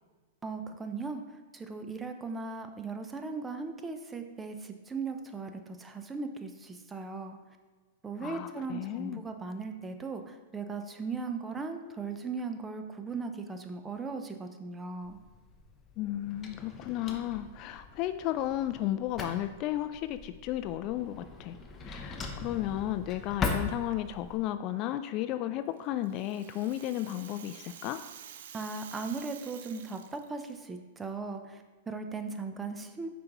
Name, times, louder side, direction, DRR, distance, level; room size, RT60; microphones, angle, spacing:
voice 1, 0.4-1.2 1.5-7.4 8.0-15.2 28.5-33.1, right 4 dB, 15° right, 6 dB, 0.6 m, -38 dB
voice 2, 8.2-9.2 16.0-21.6 21.8-28.0, left 13 dB, 40° left, 10 dB, 0.3 m, -34 dB
Drawer open or close, 15.0-24.4, left 4 dB, 20° left, 0.8 m, -40 dB
Rattle (instrument), 25.8-30.5, right 9 dB, 70° right, 0.5 m, -49 dB
8.0 x 5.1 x 3.0 m, 1.4 s
hypercardioid pair, 135°, 0 cm